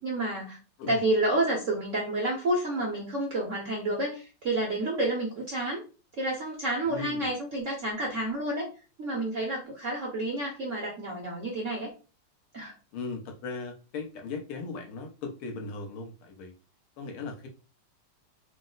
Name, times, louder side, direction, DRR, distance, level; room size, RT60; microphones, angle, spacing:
voice 1, 0.0-0.6 0.9-5.8 6.2-8.7 9.0-11.9 12.5-12.7, right 1 dB, 55° right, 0.8 m, -29 dB
voice 2, 6.9-7.3 12.9-16.5 17.0-17.5, left 4 dB, 80° left, 1.7 m, -38 dB
4.1 x 2.0 x 3.8 m
omnidirectional pair, 2.4 m